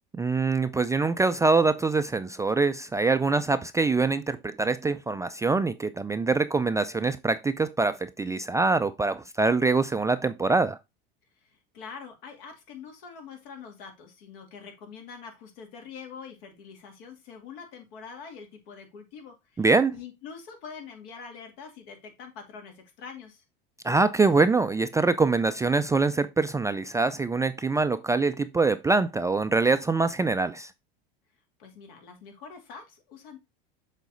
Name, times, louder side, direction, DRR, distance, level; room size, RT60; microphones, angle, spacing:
voice 1, 0.2-10.8 19.6-19.9 23.8-30.7, right 3 dB, 10° right, 0.3 m, -24 dB
voice 2, 11.4-19.7 19.9-23.4 31.6-33.4, left 6 dB, 75° left, 2.6 m, -44 dB
7.1 x 4.0 x 3.9 m
hypercardioid pair, 100°, 29 cm